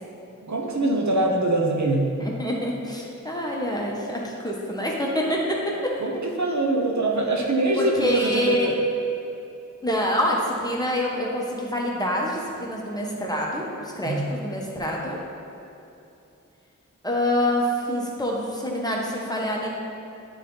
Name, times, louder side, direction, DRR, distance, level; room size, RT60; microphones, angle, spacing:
voice 1, 0.4-2.1 6.0-8.7 14.0-14.3, right 2 dB, 65° right, 0 dB, 0.8 m, -23 dB
voice 2, 2.2-5.9 7.8-8.7 9.8-15.2 17.0-19.7, left 1 dB, 10° left, -3 dB, 1.1 m, -26 dB
9.2 x 4.0 x 3.9 m, 2.8 s
wide cardioid pair, 50°, 31 cm